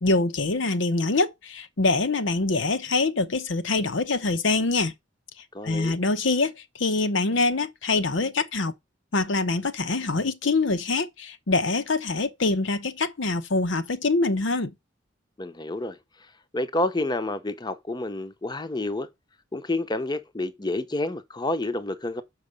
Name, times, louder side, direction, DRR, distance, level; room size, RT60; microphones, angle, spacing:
voice 1, 0.0-4.9 5.6-8.7 9.1-14.7, left 3 dB, 75° left, 0.9 m, -24 dB
voice 2, 5.5-6.0 15.4-16.0 16.5-19.1 19.5-22.2, left 2 dB, 20° left, 0.7 m, -29 dB
6.4 x 4.9 x 6.6 m
head